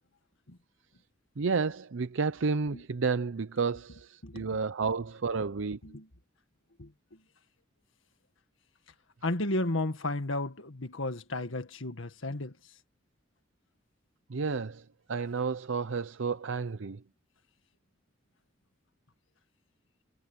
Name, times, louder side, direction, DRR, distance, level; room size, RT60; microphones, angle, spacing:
voice 1, 1.4-5.8 14.3-14.8 15.1-17.0, right 4 dB, 75° right, 0.6 m, -31 dB
voice 2, 4.2-4.9 5.8-6.1 6.8-6.9 9.2-12.5, left 2 dB, 80° left, 1.9 m, -33 dB
head